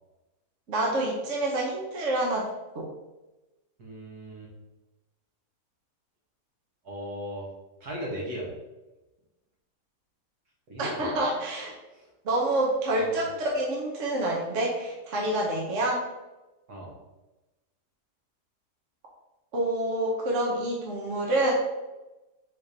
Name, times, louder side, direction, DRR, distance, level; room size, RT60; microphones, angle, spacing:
voice 1, 0.7-2.5 2.7-2.9 10.8-11.7 12.2-16.0 19.5-21.5, right 1 dB, 50° right, -2 dB, 1.3 m, -27 dB
voice 2, 3.8-4.5 6.8-7.5 7.8-8.5 10.7-11.1 11.9-12.1 13.0-13.3 16.7-16.9, equal, 70° right, -3 dB, 2.1 m, -37 dB
5.1 x 4.6 x 4.2 m, 1.1 s
omnidirectional pair, 1.7 m